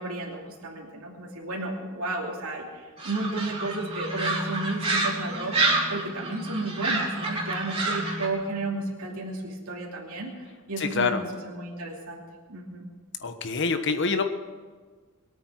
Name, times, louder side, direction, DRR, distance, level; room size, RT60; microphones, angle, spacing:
voice 1, 0.0-11.2 11.4-12.2 12.5-12.8, right 2 dB, 80° right, -2 dB, 2.8 m, -33 dB
sound 1, 3.0-9.5, left 1 dB, 10° right, 0.9 m, -40 dB
sound 2, 3.0-8.3, right 3 dB, 30° right, 3.5 m, -29 dB
voice 2, 10.8-11.2 13.2-14.2, left 4 dB, 55° left, 8 dB, 1.2 m, -26 dB
23.0 x 8.8 x 6.4 m, 1.5 s
head